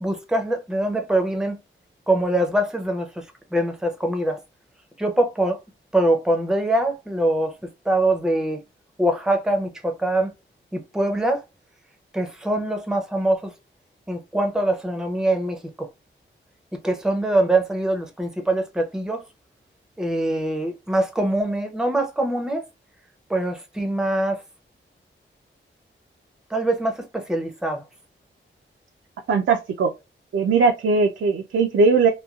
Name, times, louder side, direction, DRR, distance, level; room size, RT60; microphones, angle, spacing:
voice 1, 0.0-1.6 2.1-3.2 3.5-4.4 5.0-5.6 5.9-7.5 7.9-8.6 9.0-10.3 10.7-11.4 12.1-13.5 14.1-15.9 16.7-19.2 20.0-22.7 23.3-24.4 26.5-27.8, right 1 dB, 5° right, 0.5 m, -23 dB
voice 2, 29.3-29.9 30.3-32.1, right 4 dB, 75° right, 0.4 m, -19 dB
3.0 x 2.2 x 2.3 m
wide cardioid pair, 110°, 21 cm